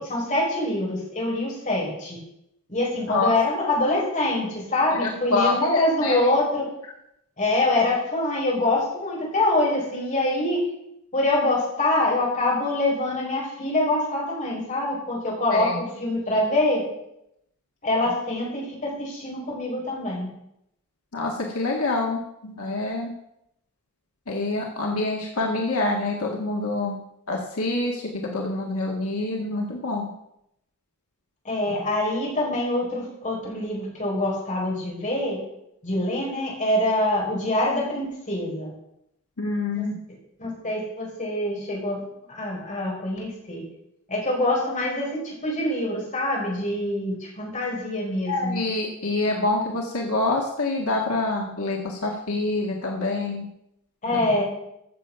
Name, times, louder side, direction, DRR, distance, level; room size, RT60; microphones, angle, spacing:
voice 1, 0.0-2.2 2.7-6.6 7.4-10.6 11.1-16.8 17.8-20.3 31.4-35.4 35.8-38.7 39.7-39.9 40.4-42.0 42.3-43.6 44.1-48.6 54.0-54.4, left 1 dB, 35° left, -3 dB, 4.7 m, -25 dB
voice 2, 4.9-6.2 15.5-15.8 21.1-23.1 24.3-27.0 27.3-30.1 39.4-40.0 48.3-53.5 54.1-54.3, left 2 dB, 75° left, 0 dB, 1.6 m, -26 dB
14.5 x 7.0 x 5.8 m, 0.80 s
head